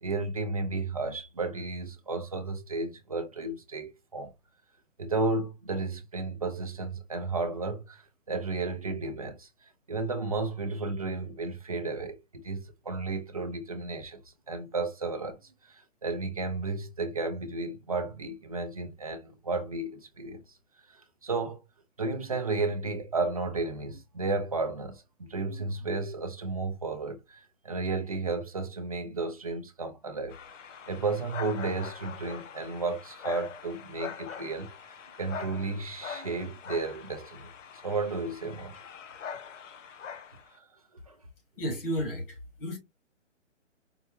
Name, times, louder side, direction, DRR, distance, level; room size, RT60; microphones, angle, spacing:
voice 1, 0.0-4.3 5.0-9.5 9.9-14.2 14.5-15.4 15.6-20.4 20.9-21.6 22.0-30.4 30.9-37.5 37.8-38.7 40.5-40.7 41.1-41.2, right 3 dB, 30° right, 0.5 m, -33 dB
sound 1, 30.3-40.6, left 7 dB, 70° left, 0.7 m, -43 dB
voice 2, 41.6-42.8, equal, 45° left, 1.7 m, -33 dB
4.5 x 2.3 x 3.0 m
hypercardioid pair, 160°, 38 cm